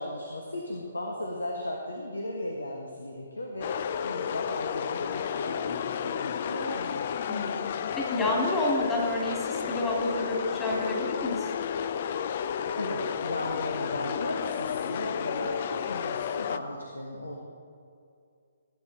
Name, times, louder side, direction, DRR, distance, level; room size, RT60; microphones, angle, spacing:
voice 1, 0.0-7.0 12.8-17.4, left 1 dB, 80° left, 0 dB, 1.5 m, -36 dB
sound 1, 3.6-16.6, left 8 dB, 45° left, 0.5 m, -32 dB
voice 2, 8.0-11.5, left 1 dB, 15° left, -3 dB, 2.7 m, -29 dB
16.5 x 9.8 x 4.3 m, 2.4 s
figure-of-eight pair, 135°, 0 cm